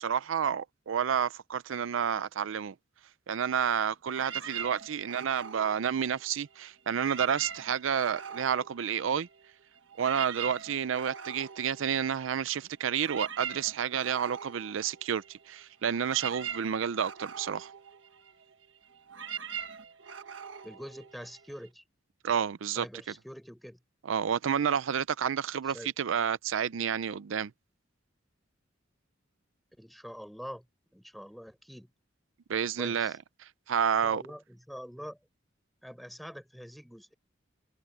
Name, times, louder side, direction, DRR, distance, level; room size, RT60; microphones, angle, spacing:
voice 1, 0.0-2.7 3.3-9.3 10.0-17.7 22.2-22.9 24.1-27.5 32.5-33.1 33.7-34.2, right 8 dB, 85° right, 0.5 m, -30 dB
sound 1, 4.1-6.6 6.9-9.5 9.8-21.7, right 7 dB, 70° right, 1.5 m, -42 dB
voice 2, 20.6-21.8 22.6-23.8 25.7-25.9 29.8-30.6 30.9-31.9 32.8-33.2 34.0-35.2 35.8-37.1, equal, ahead, 4.9 m, -45 dB
head